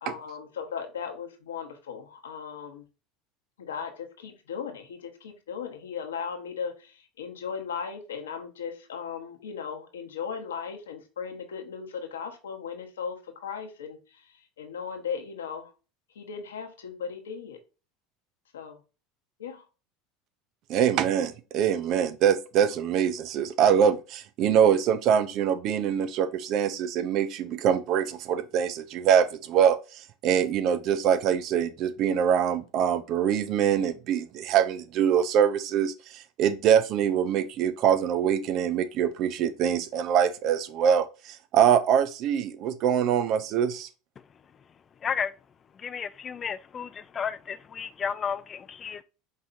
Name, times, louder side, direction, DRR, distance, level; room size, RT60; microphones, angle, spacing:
voice 1, 0.0-2.8 3.6-15.7 16.1-17.6 18.5-18.8 19.4-19.7, left 6 dB, 90° left, 1.0 m, -37 dB
voice 2, 20.7-43.9, right 8 dB, 55° right, 0.5 m, -24 dB
voice 3, 45.8-46.9 47.2-49.0, left 7 dB, 35° left, 0.3 m, -32 dB
5.4 x 3.2 x 2.5 m
hypercardioid pair, 85°, 0 cm